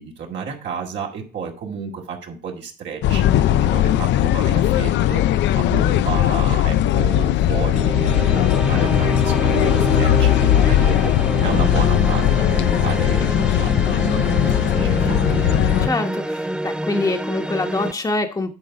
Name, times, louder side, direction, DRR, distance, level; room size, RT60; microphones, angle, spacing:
voice 1, 0.0-15.6, right 6 dB, 75° right, 0 dB, 2.2 m, -32 dB
sound 1, 3.0-15.9, left 12 dB, 80° left, 0.4 m, -18 dB
sound 2, 7.7-17.9, right 1 dB, 5° right, 0.4 m, -26 dB
voice 2, 15.8-18.5, left 2 dB, 20° left, 4 dB, 1.1 m, -24 dB
10.5 x 3.9 x 4.9 m, 0.37 s
cardioid pair, 85°, 18 cm